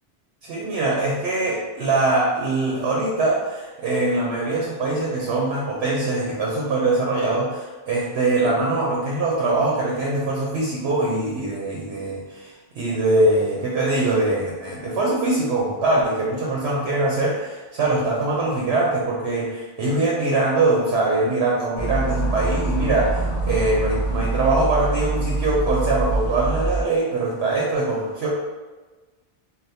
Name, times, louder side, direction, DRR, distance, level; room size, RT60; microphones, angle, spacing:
voice 1, 0.4-28.3, right 2 dB, 85° right, -4 dB, 0.8 m, -22 dB
sound 1, 21.8-26.8, right 3 dB, 75° left, 0.8 m, -25 dB
3.3 x 2.2 x 2.7 m, 1.3 s
omnidirectional pair, 1.1 m